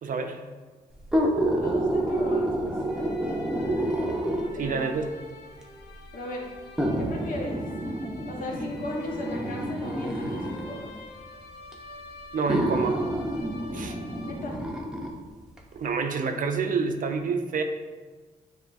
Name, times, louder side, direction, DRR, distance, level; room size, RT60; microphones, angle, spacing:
voice 1, 0.0-0.4 4.6-5.1 12.3-13.0 13.7-13.9 15.7-17.6, right 5 dB, 55° right, 6 dB, 0.5 m, -28 dB
sound 1, 1.0-4.7 5.6-5.7 6.8-10.7 11.7-11.8 12.5-15.1 15.6-15.7, right 1 dB, 5° right, 0.7 m, -28 dB
voice 2, 1.5-3.3 4.6-5.0 6.1-6.5 7.0-7.6 8.3-10.9 13.7-13.9 14.2-14.6, left 1 dB, 60° left, -1 dB, 1.0 m, -37 dB
sound 2, 2.8-14.9, left 3 dB, 80° left, 0.9 m, -46 dB
6.9 x 2.4 x 2.5 m, 1.4 s
cardioid pair, 65°, 16 cm